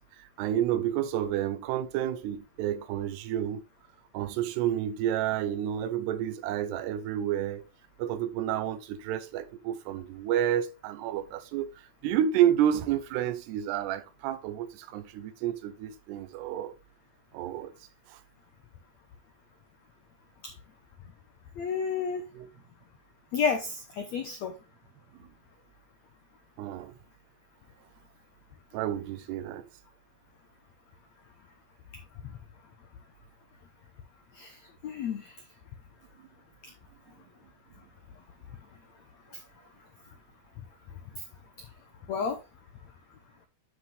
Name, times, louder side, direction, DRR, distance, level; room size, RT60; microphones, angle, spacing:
voice 1, 0.2-3.6 4.1-7.6 8.0-11.7 12.0-16.7 17.3-17.7 18.1-18.2 22.4-22.5 25.2-25.3 26.6-26.9 28.7-29.6, right 11 dB, 80° right, 2.9 m, -30 dB
voice 2, 21.6-22.3 23.3-24.5 34.3-34.6 34.8-35.3 39.3-39.4 42.1-42.4, left 6 dB, 85° left, 1.5 m, -30 dB
9.8 x 6.1 x 3.4 m
omnidirectional pair, 4.8 m